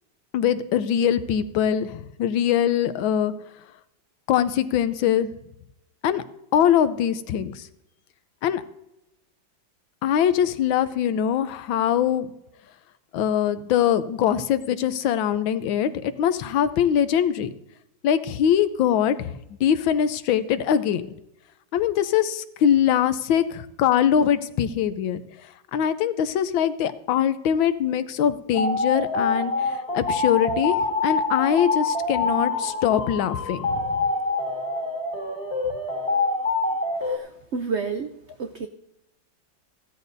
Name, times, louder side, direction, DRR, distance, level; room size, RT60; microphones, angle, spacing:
voice 1, 0.3-3.3 4.3-5.3 6.0-6.2 6.5-7.6 8.4-8.6 10.0-12.3 13.1-17.5 18.0-19.3 19.6-21.0 21.7-25.2 25.7-30.8 31.0-34.0, left 9 dB, 85° left, 12 dB, 1.5 m, -22 dB
sound 1, 28.5-37.2, left 3 dB, 15° left, 1.7 m, -26 dB
voice 2, 37.0-38.1 38.4-38.7, right 5 dB, 85° right, 6 dB, 0.6 m, -30 dB
15.5 x 13.0 x 2.7 m, 0.87 s
omnidirectional pair, 2.1 m